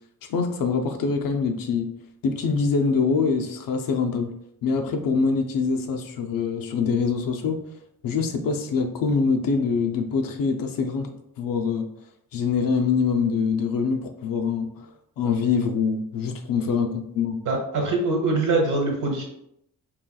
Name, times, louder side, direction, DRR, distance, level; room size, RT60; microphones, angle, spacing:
voice 1, 0.3-1.9 2.2-4.3 4.6-7.6 8.0-11.1 11.4-11.9 12.3-14.9 15.2-17.4, left 5 dB, 65° left, 5 dB, 0.6 m, -24 dB
voice 2, 17.4-19.2, right 3 dB, 55° right, 1 dB, 1.1 m, -23 dB
4.7 x 3.1 x 2.3 m, 0.77 s
cardioid pair, 140°, 37 cm